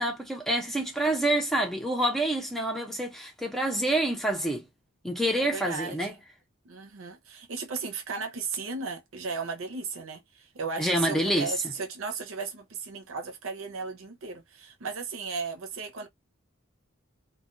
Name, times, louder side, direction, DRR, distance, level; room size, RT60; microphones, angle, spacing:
voice 1, 0.0-4.7 5.0-6.1 10.8-11.5, right 1 dB, ahead, 0.6 m, -27 dB
voice 2, 5.4-6.2 6.6-16.1, right 4 dB, 90° right, 0.6 m, -35 dB
2.2 x 2.2 x 2.4 m
head